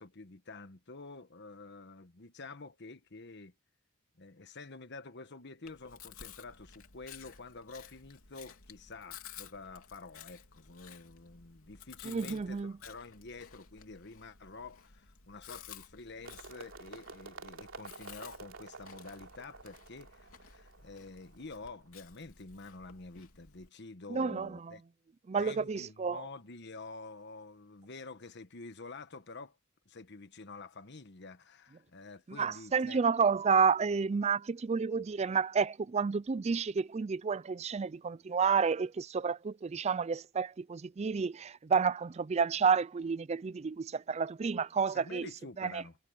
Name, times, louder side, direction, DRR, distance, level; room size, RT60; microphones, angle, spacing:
voice 1, 0.0-3.5 4.2-24.8 25.4-29.6 29.9-33.0 44.9-46.0, left 3 dB, 55° left, 1.3 m, -48 dB
Chewing mastication, 5.6-23.7, left 8 dB, 80° left, 3.4 m, -54 dB
voice 2, 12.0-12.7 24.1-24.7 25.3-26.2 32.4-45.3 45.6-45.8, right 5 dB, 30° right, 0.4 m, -30 dB
sound 1, 16.2-22.1, right 3 dB, 65° right, 3.2 m, -51 dB
head